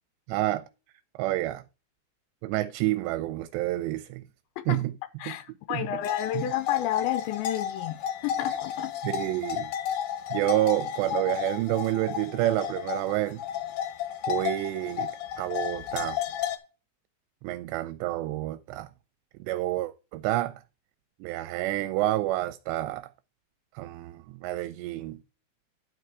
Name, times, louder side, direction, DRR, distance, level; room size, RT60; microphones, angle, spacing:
voice 1, 0.3-0.7 1.2-1.6 2.4-4.3 4.7-4.9 5.3-5.4 5.7-5.9 6.3-6.5 9.0-9.7 10.3-13.4 14.3-15.1 15.4-16.2 17.4-18.9 19.4-20.6 21.2-23.1 23.8-25.2, right 16 dB, 80° right, 2.6 m, -29 dB
voice 2, 5.2-8.9, left 12 dB, 85° left, 2.9 m, -31 dB
sound 1, 6.0-16.6, left 9 dB, 65° left, 2.5 m, -33 dB
11.0 x 5.6 x 4.6 m
omnidirectional pair, 5.3 m